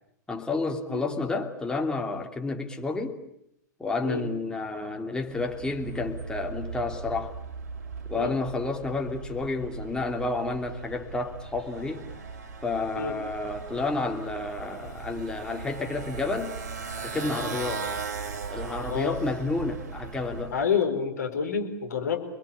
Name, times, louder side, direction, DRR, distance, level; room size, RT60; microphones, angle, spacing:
voice 1, 0.3-3.2 3.8-7.4 8.1-12.1 12.6-16.6 17.0-17.9 18.5-20.6, left 3 dB, 10° left, 2 dB, 3.0 m, -30 dB
Motorcycle, 5.3-20.7, right 5 dB, 55° right, 3.9 m, -38 dB
voice 2, 20.5-22.3, left 6 dB, 65° left, 5 dB, 4.6 m, -28 dB
29.5 x 21.5 x 8.7 m, 0.78 s
figure-of-eight pair, 95°, 10 cm